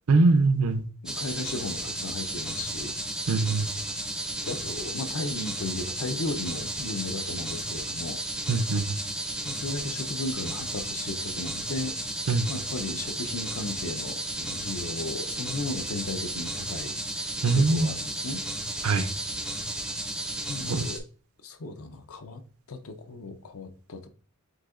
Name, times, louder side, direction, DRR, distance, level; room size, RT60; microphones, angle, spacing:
voice 1, 0.1-0.8 3.3-3.7 8.5-9.0 12.3-12.5 17.4-17.9 18.8-19.1 20.7-20.9, right 3 dB, 75° right, 0.6 m, -22 dB
voice 2, 1.0-2.9 4.4-8.2 9.4-12.0 12.5-17.0 17.5-18.5 20.5-21.0 21.4-22.4 22.7-24.1, left 2 dB, 75° left, 0.6 m, -35 dB
sound 1, 1.1-21.0, right 1 dB, 5° right, 0.4 m, -33 dB
7.8 x 2.7 x 2.5 m
head